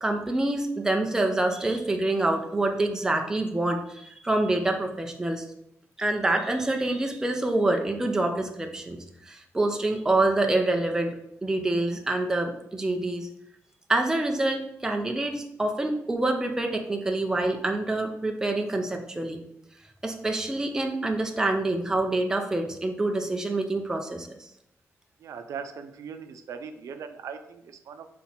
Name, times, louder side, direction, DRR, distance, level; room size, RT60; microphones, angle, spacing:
voice 1, 0.0-5.4 6.0-11.1 11.4-13.3 13.9-19.4 20.0-24.5, right 2 dB, 10° right, 3 dB, 0.6 m, -26 dB
voice 2, 25.2-28.1, right 6 dB, 80° right, 7 dB, 0.6 m, -39 dB
5.9 x 4.2 x 4.3 m, 0.76 s
wide cardioid pair, 170°, 5 cm